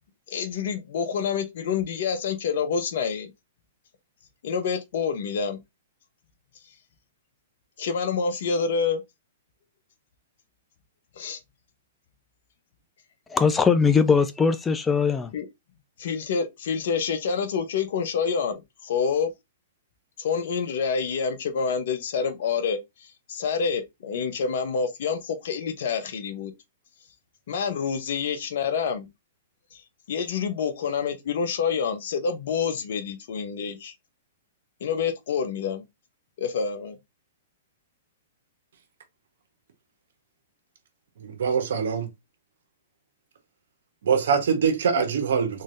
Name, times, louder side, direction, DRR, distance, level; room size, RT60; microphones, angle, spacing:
voice 1, 0.3-3.3 4.4-5.6 7.8-9.0 11.2-11.4 15.3-15.5 16.0-19.3 20.2-26.5 27.5-29.1 29.7-29.8 30.1-33.9 34.8-35.8 36.4-37.0, left 6 dB, 65° left, 0.9 m, -27 dB
voice 2, 13.3-15.3, left 5 dB, 15° left, 0.3 m, -20 dB
voice 3, 41.2-42.1 44.0-45.6, right 6 dB, 75° right, 1.2 m, -23 dB
3.7 x 3.2 x 2.6 m
hypercardioid pair, 130°, 0 cm